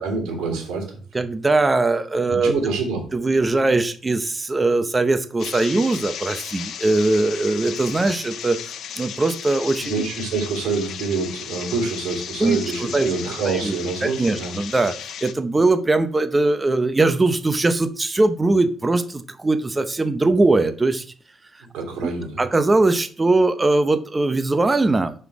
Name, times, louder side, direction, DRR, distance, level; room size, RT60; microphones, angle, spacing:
voice 1, 0.0-1.0 2.3-3.0 9.9-14.5 21.7-22.4, right 4 dB, 80° right, 0 dB, 2.8 m, -26 dB
voice 2, 1.1-2.5 3.1-8.6 9.0-9.9 12.4-12.6 12.9-13.1 13.6-13.7 14.2-14.9 15.2-21.0 22.4-25.1, right 2 dB, 20° right, 10 dB, 0.8 m, -20 dB
sound 1, 5.4-15.3, left 8 dB, 70° left, 0.7 m, -35 dB
5.9 x 5.6 x 4.8 m, 0.43 s
cardioid pair, 90°, 0 cm